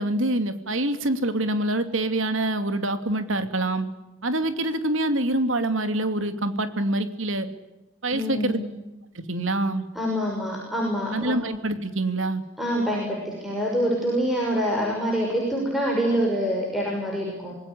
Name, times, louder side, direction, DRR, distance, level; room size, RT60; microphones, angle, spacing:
voice 1, 0.0-3.9 4.2-7.5 8.0-8.6 9.3-9.8 11.1-12.4, right 1 dB, 75° right, 9 dB, 2.7 m, -25 dB
voice 2, 8.1-8.7 9.9-11.4 12.6-17.5, equal, ahead, -2 dB, 6.2 m, -26 dB
26.5 x 20.0 x 9.9 m, 1.0 s
head